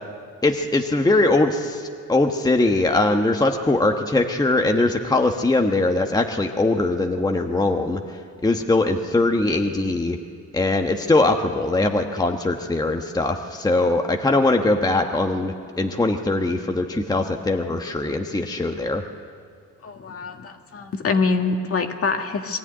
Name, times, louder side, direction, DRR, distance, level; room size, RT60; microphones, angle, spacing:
voice 1, 0.4-8.0 8.4-10.2 10.5-19.0, left 2 dB, 15° left, 3 dB, 1.2 m, -21 dB
voice 2, 19.8-22.6, left 4 dB, 50° left, 4 dB, 1.9 m, -25 dB
22.5 x 14.0 x 9.9 m, 2.1 s
cardioid pair, 90°, 30 cm